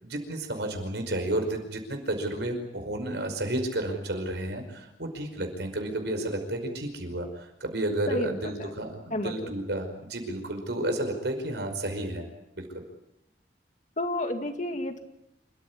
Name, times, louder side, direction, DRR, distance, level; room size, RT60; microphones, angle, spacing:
voice 1, 0.0-7.3 7.6-12.3 12.5-12.8, right 1 dB, 75° right, 5 dB, 5.3 m, -31 dB
voice 2, 8.1-8.7 9.1-9.5 14.0-15.0, left 1 dB, 45° left, 6 dB, 2.3 m, -31 dB
27.5 x 14.5 x 9.8 m, 0.84 s
head